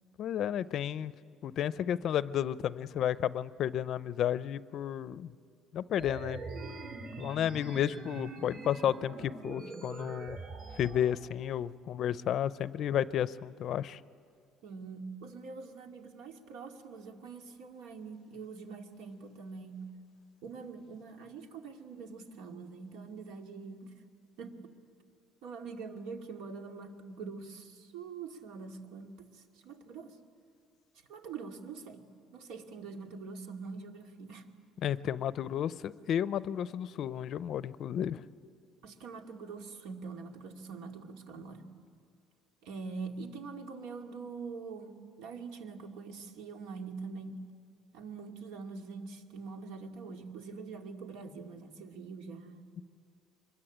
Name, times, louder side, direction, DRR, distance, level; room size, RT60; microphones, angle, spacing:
voice 1, 0.2-1.1 1.4-5.3 5.7-6.4 7.2-10.4 10.8-14.0 34.8-38.3, left 10 dB, 45° left, 17 dB, 0.5 m, -32 dB
sound 1, 6.0-11.0, right 3 dB, 45° right, 3.8 m, -43 dB
voice 2, 14.6-19.9 20.4-23.9 24.4-24.6 25.4-30.2 31.1-32.1 32.3-34.5 38.8-41.7 42.6-47.4 47.9-52.7, right 4 dB, 85° right, 4 dB, 2.4 m, -44 dB
24.5 x 22.0 x 10.0 m, 2.5 s
cardioid pair, 160°, 0 cm